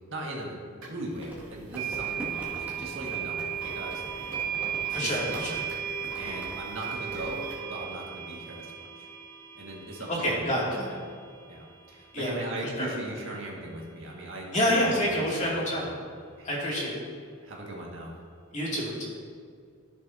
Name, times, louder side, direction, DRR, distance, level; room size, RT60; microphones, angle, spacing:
voice 1, 0.1-4.4 5.0-5.8 6.2-9.1 9.5-10.7 11.5-14.8 15.2-15.9 16.4-16.5 17.4-18.1, right 1 dB, 65° right, -2 dB, 1.8 m, -39 dB
sound 1, 0.8-0.9 1.7-12.7, right 8 dB, 85° right, 2.2 m, -36 dB
Crumpling crinkling, 1.2-7.3, right 1 dB, 10° right, 2.0 m, -43 dB
voice 2, 4.9-5.6 10.1-10.9 12.1-12.3 12.8-12.9 14.5-15.9 16.4-17.0 18.5-19.1, equal, 35° left, -5 dB, 2.5 m, -27 dB
14.0 x 7.1 x 2.8 m, 2.2 s
head